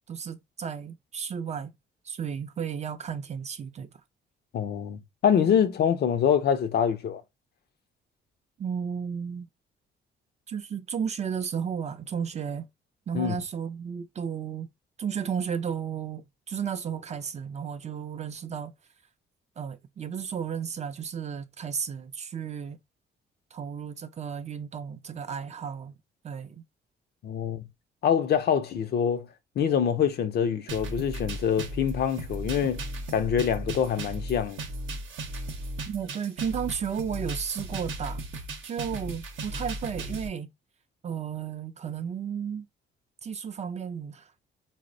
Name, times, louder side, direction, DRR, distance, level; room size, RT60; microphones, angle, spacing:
voice 1, 0.1-1.7 2.0-3.9 8.6-9.5 10.5-12.7 13.1-14.7 15.0-18.7 19.6-22.8 23.5-25.9 26.2-26.6 35.9-38.2 38.6-40.5 41.0-42.7 43.2-44.3, right 7 dB, 35° right, 0.4 m, -33 dB
voice 2, 4.5-7.2 13.1-13.4 27.2-27.6 28.0-29.3 29.6-32.8 33.1-34.6, left 8 dB, 55° left, 0.5 m, -25 dB
sound 1, 30.7-40.3, right 1 dB, 75° right, 0.7 m, -36 dB
4.0 x 2.0 x 2.5 m
cardioid pair, 90°, 20 cm